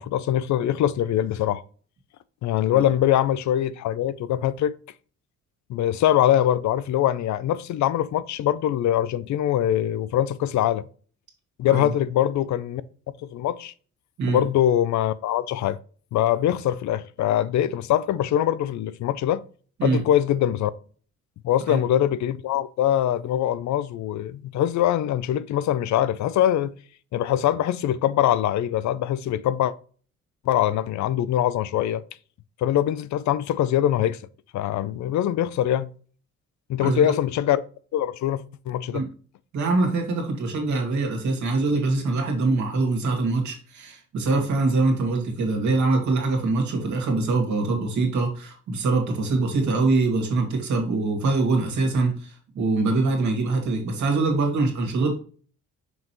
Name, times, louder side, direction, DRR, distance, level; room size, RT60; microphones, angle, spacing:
voice 1, 0.0-1.6 2.4-4.7 5.7-10.9 11.6-12.8 13.3-13.7 14.3-15.8 16.1-19.4 19.8-20.7 21.4-26.7 27.1-29.7 30.5-32.0 32.6-34.2 34.5-35.9 36.7-37.6 37.9-39.0, left 11 dB, 70° left, 0.5 m, -23 dB
voice 2, 36.8-37.1 38.9-39.1 39.5-55.1, right 3 dB, 70° right, 2.4 m, -23 dB
6.0 x 5.3 x 3.0 m
cardioid pair, 90°, 30 cm